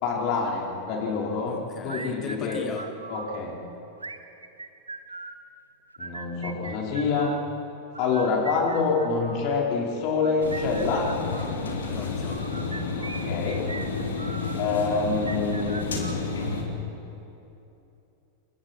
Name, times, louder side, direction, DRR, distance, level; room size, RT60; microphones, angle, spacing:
voice 1, 0.0-1.6 1.8-2.6 3.1-3.5 6.0-7.3 8.0-11.1 13.0-13.6 14.6-16.0, left 4 dB, 45° left, -2 dB, 4.9 m, -26 dB
voice 2, 1.5-2.9 11.9-12.4, left 7 dB, 25° left, 7 dB, 1.4 m, -38 dB
sound 1, 1.9-3.4 4.0-5.4 5.9-7.4 7.9-9.5 10.1-11.5 12.3-14.6 15.1-16.6, right 3 dB, 80° right, 1.0 m, -40 dB
sound 2, 10.4-16.6, left 4 dB, 65° left, 3.1 m, -30 dB
29.5 x 23.5 x 4.6 m, 2.8 s
figure-of-eight pair, 90°, 0 cm